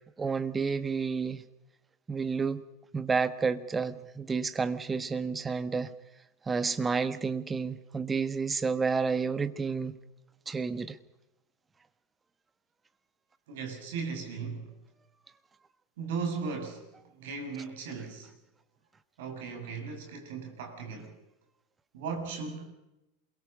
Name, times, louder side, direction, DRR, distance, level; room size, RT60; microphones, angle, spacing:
voice 1, 0.2-1.4 2.1-2.6 2.9-5.9 6.5-10.0 10.5-11.0, right 5 dB, 15° right, 1.5 m, -30 dB
voice 2, 13.5-14.7 16.0-18.3 19.2-21.2 21.9-22.7, right 5 dB, 60° right, 6.2 m, -37 dB
28.5 x 22.5 x 5.3 m
figure-of-eight pair, 85°, 0 cm